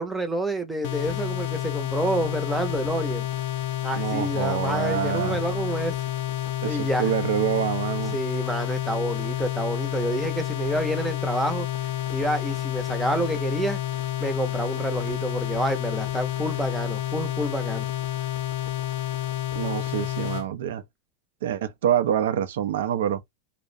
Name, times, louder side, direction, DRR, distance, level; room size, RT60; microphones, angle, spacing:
voice 1, 0.0-3.3 3.8-5.9 6.6-7.1 8.1-11.7 12.1-13.8 14.2-17.9, right 1 dB, 5° right, 0.5 m, -28 dB
sound 1, 0.8-20.5, left 13 dB, 60° left, 0.5 m, -29 dB
voice 2, 3.9-5.4 6.6-8.2 19.5-20.8 21.4-23.2, right 10 dB, 80° right, 0.4 m, -26 dB
2.3 x 2.0 x 2.6 m
supercardioid pair, 145°, 0 cm